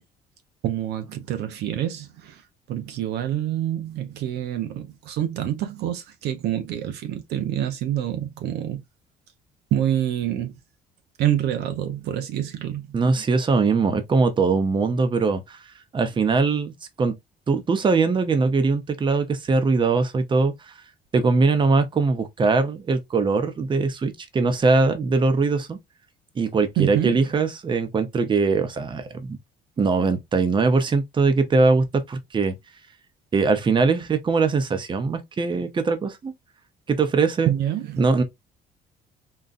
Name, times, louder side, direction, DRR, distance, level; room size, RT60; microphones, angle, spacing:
voice 1, 0.6-2.4 2.7-8.8 9.7-10.5 11.2-13.0 26.8-27.3 37.5-38.0, right 11 dB, 80° right, 0.8 m, -26 dB
voice 2, 12.9-15.6 15.9-16.7 17.0-17.1 17.5-20.7 21.1-25.8 26.4-29.4 29.8-32.5 33.3-36.3 36.9-37.5 38.0-38.2, right 4 dB, 30° right, 0.7 m, -21 dB
3.9 x 2.2 x 2.5 m
cardioid pair, 110°, 17 cm